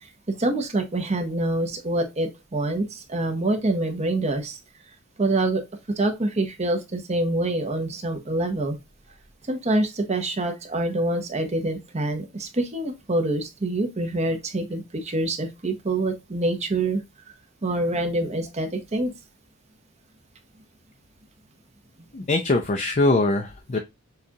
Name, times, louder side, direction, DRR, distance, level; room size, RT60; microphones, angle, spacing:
voice 1, 0.0-4.6 5.2-5.6 6.0-8.8 9.5-17.0 17.6-19.1, right 2 dB, 30° right, 5 dB, 0.8 m, -26 dB
voice 2, 22.1-23.8, left 2 dB, 35° left, 4 dB, 0.5 m, -22 dB
6.6 x 2.4 x 2.9 m, 0.23 s
head